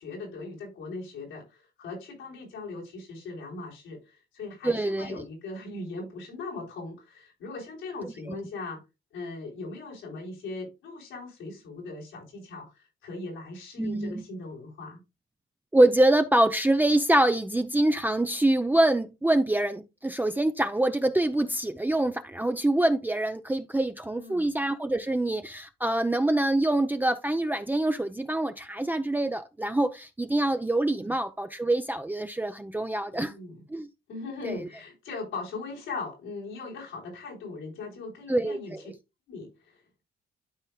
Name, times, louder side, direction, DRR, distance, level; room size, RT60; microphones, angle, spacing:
voice 1, 0.0-8.8 9.1-15.0 24.1-24.5 31.0-31.1 33.1-33.6 34.1-38.7 39.3-39.7, left 3 dB, 90° left, 3.8 m, -39 dB
voice 2, 4.6-5.2 8.0-8.3 13.8-14.2 15.7-33.3 33.7-33.9 34.4-34.7 38.3-38.8, right 1 dB, 10° right, 0.6 m, -25 dB
12.5 x 4.5 x 2.3 m
cardioid pair, 90°, 20 cm